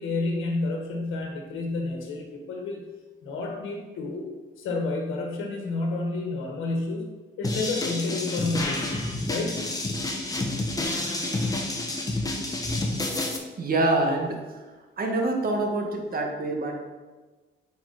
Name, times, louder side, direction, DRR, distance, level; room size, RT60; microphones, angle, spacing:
voice 1, 0.0-2.8 3.2-4.3 4.6-7.1 7.4-8.9 9.3-9.6 11.5-11.7 12.6-12.8, left 3 dB, 85° left, 2 dB, 1.4 m, -30 dB
sound 1, 7.4-13.4, left 2 dB, 20° left, 1.3 m, -29 dB
voice 2, 13.6-14.7 15.0-16.9, right 2 dB, 45° right, 2 dB, 1.6 m, -26 dB
8.5 x 4.9 x 4.1 m, 1.3 s
cardioid pair, 90°, 20 cm